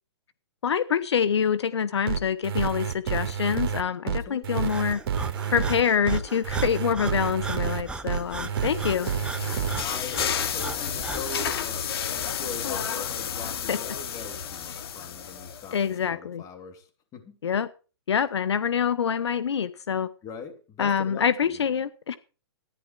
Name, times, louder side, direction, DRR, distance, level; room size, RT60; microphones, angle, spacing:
voice 1, 0.6-5.0 5.5-9.1 13.7-13.8 15.7-16.4 17.4-17.7 18.1-20.1 20.8-22.2, left 7 dB, 80° left, 16 dB, 1.0 m, -26 dB
sound 1, 2.1-9.8, right 8 dB, 55° right, 1.6 m, -29 dB
voice 2, 4.0-4.7 9.8-17.4 20.2-21.6, left 4 dB, 25° left, 6 dB, 3.0 m, -41 dB
Breathing, 4.7-11.4, right 3 dB, 5° right, 1.0 m, -38 dB
sound 2, 8.3-15.8, left 8 dB, 60° left, 2.4 m, -32 dB
14.5 x 10.5 x 4.6 m, 0.35 s
hypercardioid pair, 135°, 14 cm